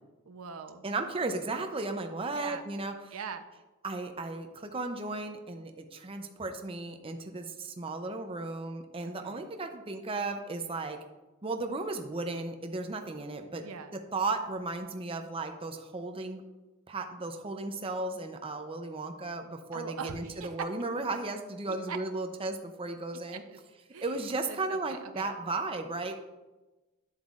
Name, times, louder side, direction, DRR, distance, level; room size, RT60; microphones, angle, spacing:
voice 1, 0.3-0.8 2.3-2.6 3.1-3.4 9.2-9.5 13.6-13.9 19.7-20.5 21.6-22.0 23.3-23.6 23.9-24.1 24.5-25.3, right 6 dB, 90° right, 8 dB, 0.6 m, -42 dB
voice 2, 0.8-2.9 3.8-11.0 11.4-13.6 14.1-16.4 16.9-23.4 24.0-26.1, right 3 dB, 25° right, 5 dB, 0.6 m, -35 dB
9.9 x 7.6 x 2.4 m, 1.1 s
head